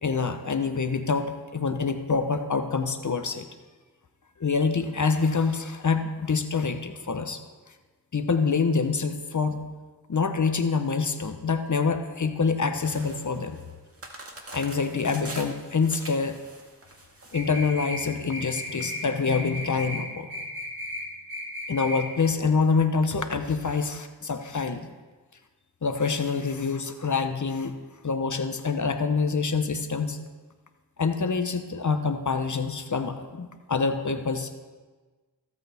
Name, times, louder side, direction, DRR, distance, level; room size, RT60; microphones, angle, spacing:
voice 1, 0.0-3.4 4.4-7.4 8.1-9.6 10.1-13.6 14.5-16.3 17.3-20.4 21.7-24.9 25.8-27.7 28.0-30.2 31.0-34.6, left 4 dB, 45° left, 8 dB, 1.0 m, -26 dB
sound 1, 12.8-18.9, right 2 dB, 35° right, 2.1 m, -44 dB
sound 2, 17.3-18.0 18.3-19.0 19.3-20.0 20.3-21.0 21.3-22.0, left 1 dB, 55° right, 3.2 m, -34 dB
21.5 x 8.6 x 3.5 m, 1.4 s
cardioid pair, 50°, 40 cm